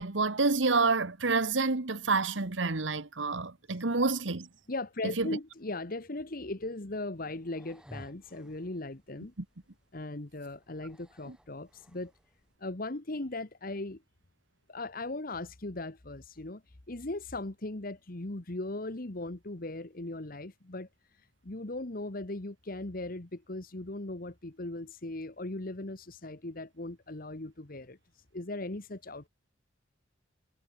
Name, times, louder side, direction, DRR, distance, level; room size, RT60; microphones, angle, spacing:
voice 1, 0.0-4.5 5.0-5.3, right 3 dB, 80° right, 1.5 m, -28 dB
voice 2, 4.7-9.3 9.9-12.1 12.6-14.0 14.7-16.6 16.9-20.9 21.4-28.0 28.3-29.3, left 2 dB, 50° left, 1.4 m, -38 dB
sound 1, 7.1-12.6, equal, 5° right, 5.8 m, -56 dB
head